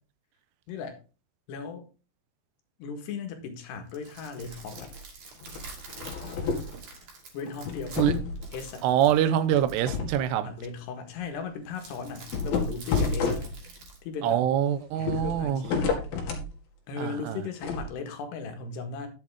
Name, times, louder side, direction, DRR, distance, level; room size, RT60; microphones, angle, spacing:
voice 1, 0.7-1.0 1.5-1.9 2.8-4.9 7.3-8.1 8.5-8.9 10.4-13.4 14.0-14.5 15.0-15.9 16.9-19.1, left 5 dB, 80° left, 3.7 m, -37 dB
sound 1, 3.7-10.0 11.8-14.0, right 5 dB, 50° right, 3.5 m, -47 dB
sound 2, 4.4-5.0 5.4-6.8 7.5-8.7 9.5-10.2 10.6-10.7 11.1-11.2 12.2-13.9 15.0-16.5 17.6-17.9, left 4 dB, 65° left, 3.7 m, -30 dB
voice 2, 8.8-10.5 14.2-15.6 17.0-17.4, right 10 dB, 80° right, 2.8 m, -25 dB
11.0 x 7.8 x 3.6 m
omnidirectional pair, 4.8 m